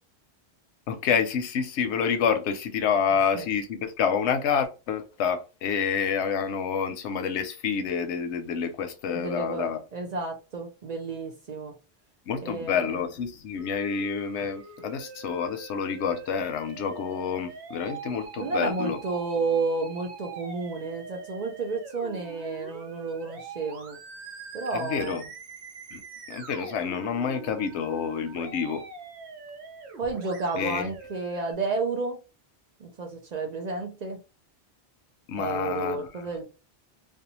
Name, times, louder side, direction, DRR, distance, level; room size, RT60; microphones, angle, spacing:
voice 1, 0.9-9.8 12.3-19.0 24.7-25.2 25.9-26.0 26.3-28.8 30.5-30.9 35.3-36.1, left 7 dB, 90° left, 0.9 m, -28 dB
voice 2, 9.1-11.7 12.4-13.1 18.4-24.0 24.5-25.3 30.0-32.2 32.8-34.2 35.4-36.4, right 3 dB, 50° right, 0.5 m, -31 dB
Musical instrument, 13.6-31.5, right 4 dB, 75° right, 0.9 m, -44 dB
2.5 x 2.2 x 2.8 m
omnidirectional pair, 1.1 m